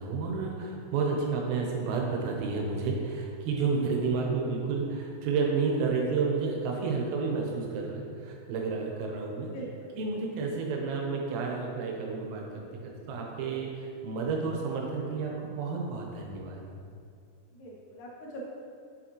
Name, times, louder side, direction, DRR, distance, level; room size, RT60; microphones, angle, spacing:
voice 1, 0.0-9.5 9.9-16.6, right 4 dB, 90° right, 0 dB, 3.6 m, -31 dB
voice 2, 9.5-9.9 17.5-18.5, right 1 dB, 75° left, -3 dB, 3.1 m, -42 dB
7.2 x 6.9 x 3.0 m, 2.4 s
omnidirectional pair, 5.8 m